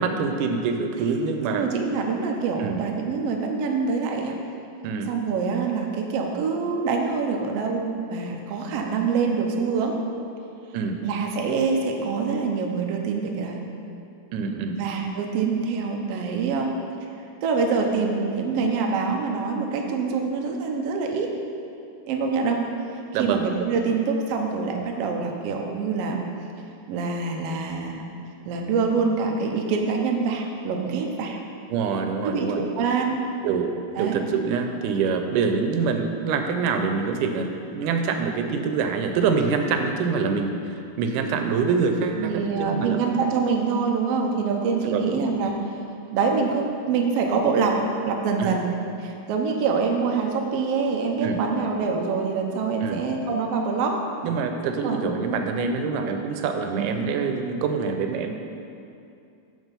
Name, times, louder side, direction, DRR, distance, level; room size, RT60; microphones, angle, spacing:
voice 1, 0.0-1.7 2.6-2.8 4.8-5.1 10.7-11.0 14.3-14.8 23.1-23.5 31.7-32.6 33.4-33.7 34.0-37.5 37.7-43.0 44.9-45.1 48.4-48.5 51.2-51.4 52.8-53.0 54.2-58.4, right 5 dB, 90° right, 5 dB, 2.2 m, -25 dB
voice 2, 1.5-4.4 5.1-9.9 11.0-13.6 14.8-16.7 17.4-21.3 22.0-22.6 23.2-26.2 26.9-28.1 28.4-31.4 32.2-33.2 33.9-34.2 42.2-45.7 46.1-47.8 48.1-48.6 49.0-54.0 54.8-55.0 56.8-56.9, right 5 dB, 75° right, 1 dB, 1.5 m, -25 dB
6.7 x 6.4 x 5.2 m, 2.6 s
omnidirectional pair, 3.5 m